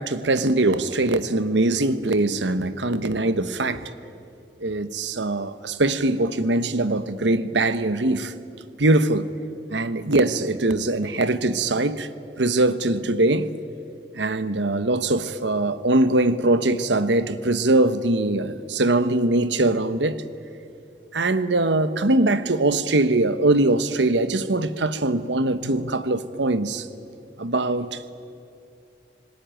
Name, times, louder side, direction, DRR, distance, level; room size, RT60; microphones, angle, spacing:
voice 1, 0.0-3.8 4.6-8.3 8.8-9.3 9.7-12.1 12.4-13.5 14.1-20.2 21.1-26.9 27.4-28.0, right 2 dB, 90° right, 1.2 m, -22 dB
26.5 x 20.0 x 9.2 m
head